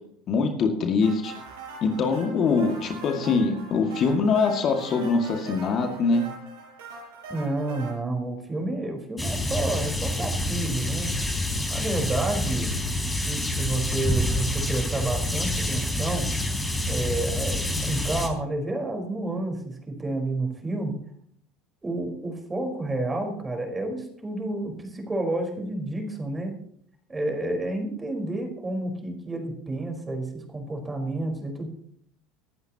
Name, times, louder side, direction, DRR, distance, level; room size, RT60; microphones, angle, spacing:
voice 1, 0.3-1.3 1.8-6.3, left 4 dB, 45° left, 3 dB, 2.2 m, -23 dB
sound 1, 1.0-7.9, right 3 dB, 75° right, 6.9 m, -42 dB
voice 2, 7.3-11.1 11.7-12.7 13.3-16.3 16.9-20.9 21.8-26.6 27.1-31.7, right 2 dB, 15° right, 3 dB, 4.6 m, -30 dB
sound 2, 9.2-18.3, left 1 dB, 10° left, 3.8 m, -27 dB
23.5 x 12.0 x 3.0 m, 0.67 s
hypercardioid pair, 75°, 0 cm